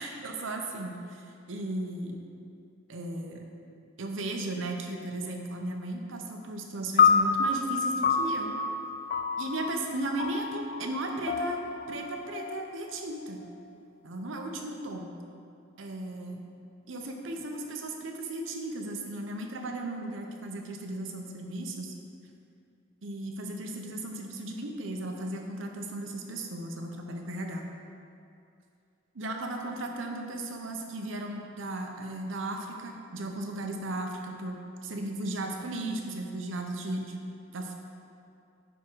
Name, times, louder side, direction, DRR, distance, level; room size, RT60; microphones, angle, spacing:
voice 1, 0.0-2.2 2.9-3.5 4.0-8.5 9.4-11.6 11.9-13.4 14.0-15.2 15.8-16.4 16.9-21.9 23.0-27.6 29.1-37.3 37.5-37.7, right 2 dB, 80° right, 3 dB, 0.7 m, -36 dB
sound 1, 7.0-13.4, left 5 dB, 45° left, 0.3 m, -28 dB
9.2 x 3.6 x 4.6 m, 2.5 s
head